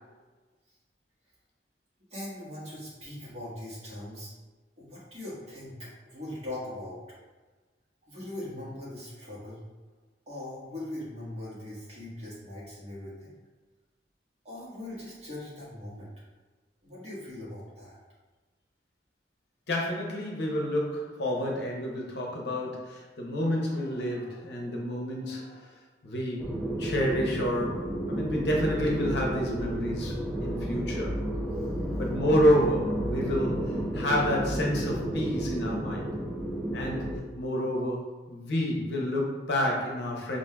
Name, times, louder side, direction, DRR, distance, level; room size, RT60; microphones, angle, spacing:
voice 1, 2.1-4.3 4.8-7.0 8.1-9.6 10.3-13.3 14.4-16.1 16.8-18.0, left 1 dB, 35° right, -8 dB, 1.4 m, -40 dB
voice 2, 19.7-25.7 26.0-26.5 26.8-31.5 32.0-36.1 36.7-40.4, equal, 65° left, -1 dB, 0.7 m, -29 dB
sound 1, 26.4-37.2, right 1 dB, ahead, 0.4 m, -32 dB
5.4 x 2.6 x 2.2 m, 1.3 s
head